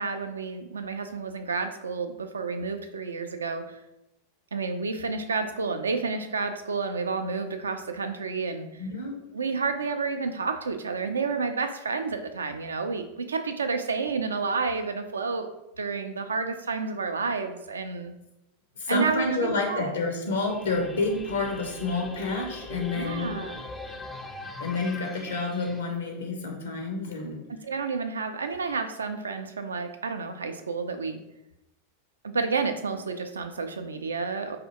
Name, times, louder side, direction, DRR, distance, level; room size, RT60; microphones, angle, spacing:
voice 1, 0.0-3.8 4.5-8.9 9.3-15.5 15.8-18.1 18.9-19.9 22.9-23.6 27.5-31.2 32.2-34.6, right 4 dB, 70° right, 7 dB, 0.3 m, -30 dB
voice 2, 8.8-9.2 18.8-23.3 24.6-27.4, left 3 dB, 70° left, 2 dB, 0.5 m, -29 dB
sound 1, 20.3-25.8, left 3 dB, 10° left, 0.4 m, -40 dB
4.1 x 2.4 x 2.8 m, 0.88 s
figure-of-eight pair, 90°, 0 cm